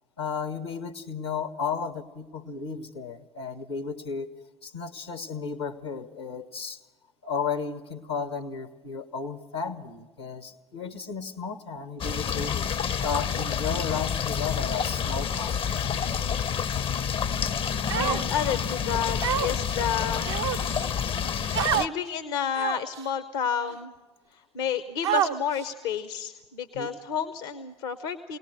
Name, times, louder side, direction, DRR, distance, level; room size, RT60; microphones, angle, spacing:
voice 1, 0.2-4.3 4.6-6.8 7.2-15.5 26.7-26.9, left 5 dB, 85° left, 10 dB, 1.2 m, -34 dB
sound 1, 12.0-21.9, left 7 dB, 40° left, 0.6 m, -28 dB
Human voice, 17.9-18.5 19.2-19.7 20.2-20.8 21.5-21.9 22.5-23.0 23.7-23.8 25.0-25.6, right 9 dB, 80° right, 0.6 m, -27 dB
voice 2, 18.0-20.3 21.7-23.9 24.3-28.4, left 7 dB, 70° left, 11 dB, 0.8 m, -30 dB
22.5 x 18.5 x 6.7 m, 1.2 s
figure-of-eight pair, 55°, 14 cm